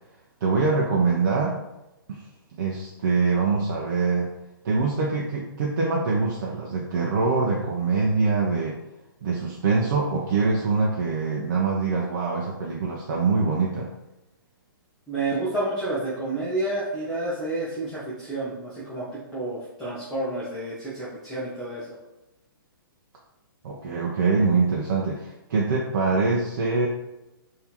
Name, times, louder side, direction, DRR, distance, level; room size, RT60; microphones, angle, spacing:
voice 1, 0.4-1.6 2.1-2.2 2.6-4.3 4.6-8.8 9.2-13.9 23.6-26.9, right 4 dB, 55° right, -2 dB, 0.7 m, -24 dB
voice 2, 15.1-22.0, right 2 dB, 5° left, -12 dB, 1.0 m, -30 dB
3.5 x 2.9 x 4.4 m, 0.95 s
hypercardioid pair, 150°, 12 cm